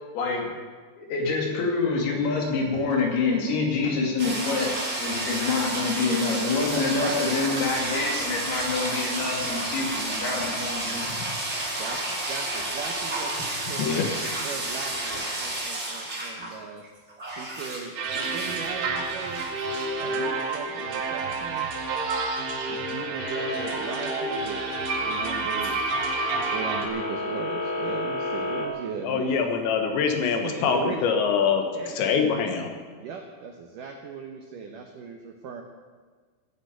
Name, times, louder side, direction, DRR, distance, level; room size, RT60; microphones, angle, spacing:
voice 1, 0.1-0.5 1.0-11.1, left 4 dB, 60° left, 0 dB, 4.1 m, -26 dB
sound 1, 4.2-16.6 16.8-18.7 19.1-19.9, right 1 dB, 20° right, 1.8 m, -31 dB
voice 2, 6.7-7.2 11.8-14.0 14.4-16.8 17.4-19.5 20.0-21.7 22.7-25.8 26.4-29.4 30.2-31.2 31.7-32.0 32.9-35.6, right 6 dB, 80° right, 3 dB, 1.9 m, -38 dB
sound 2, 18.0-26.9, right 3 dB, 55° right, 3.2 m, -29 dB
sound 3, 23.2-28.7, left 2 dB, 40° left, 2.5 m, -33 dB
voice 3, 29.0-31.6 32.0-32.7, left 6 dB, 80° left, 5 dB, 3.5 m, -24 dB
15.5 x 10.0 x 8.2 m, 1.5 s
omnidirectional pair, 5.4 m